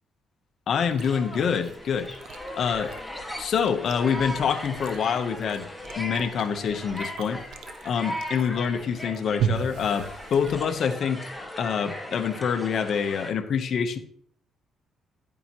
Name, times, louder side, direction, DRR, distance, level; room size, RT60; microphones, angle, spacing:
voice 1, 0.7-2.1 2.5-2.9 3.4-5.7 5.9-7.4 7.8-11.3 11.6-14.0, left 7 dB, 60° left, 8 dB, 1.0 m, -26 dB
Chewing mastication, 0.7-10.9, right 7 dB, 85° right, 0.9 m, -37 dB
sound 1, 1.0-13.3, left 1 dB, 5° left, 1.8 m, -38 dB
11.0 x 8.7 x 3.0 m, 0.62 s
cardioid pair, 90°, 0 cm